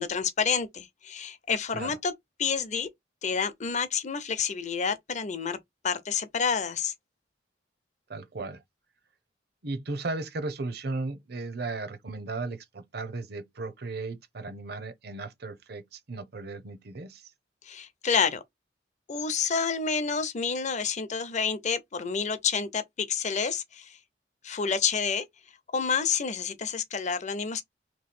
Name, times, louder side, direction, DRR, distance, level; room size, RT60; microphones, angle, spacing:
voice 1, 0.0-2.1 2.4-2.9 3.2-5.6 5.8-6.9 17.6-18.4 19.1-24.0 24.4-25.2 25.7-27.6, left 6 dB, 40° left, 0.7 m, -29 dB
voice 2, 8.1-8.6 9.6-17.3, right 3 dB, 60° right, 0.7 m, -36 dB
3.1 x 3.1 x 4.2 m
head